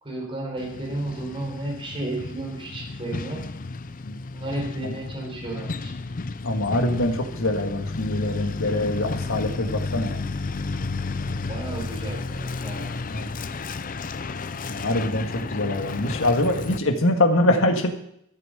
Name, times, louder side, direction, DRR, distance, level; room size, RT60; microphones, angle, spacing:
voice 1, 0.0-3.4 4.3-5.9 11.5-12.8 14.6-14.7, right 2 dB, 25° right, -1 dB, 4.0 m, -33 dB
Truck, 0.6-16.8, left 3 dB, 40° left, 0.6 m, -32 dB
voice 2, 6.4-10.3 13.1-13.4 14.7-18.0, left 1 dB, 60° left, 5 dB, 1.8 m, -24 dB
13.5 x 7.6 x 7.9 m, 0.74 s
head